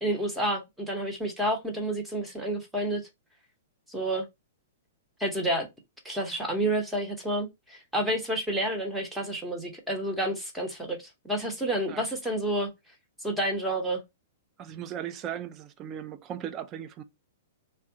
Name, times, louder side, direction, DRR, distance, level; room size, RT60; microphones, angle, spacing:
voice 1, 0.0-3.0 3.9-4.3 5.2-5.7 6.0-12.7 13.2-14.0, right 1 dB, 5° right, 0.9 m, -29 dB
voice 2, 14.6-17.0, right 10 dB, 30° right, 0.4 m, -37 dB
3.4 x 2.2 x 2.7 m
figure-of-eight pair, 110°, 0 cm